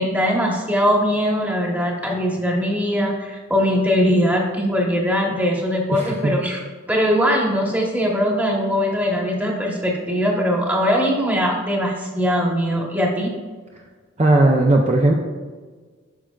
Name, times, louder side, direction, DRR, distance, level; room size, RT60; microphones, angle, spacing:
voice 1, 0.0-6.6 6.9-13.3, equal, 10° right, -1 dB, 1.0 m, -21 dB
voice 2, 5.9-6.4 14.2-15.1, right 2 dB, 30° right, 0 dB, 0.5 m, -17 dB
9.3 x 6.2 x 2.3 m, 1.4 s
head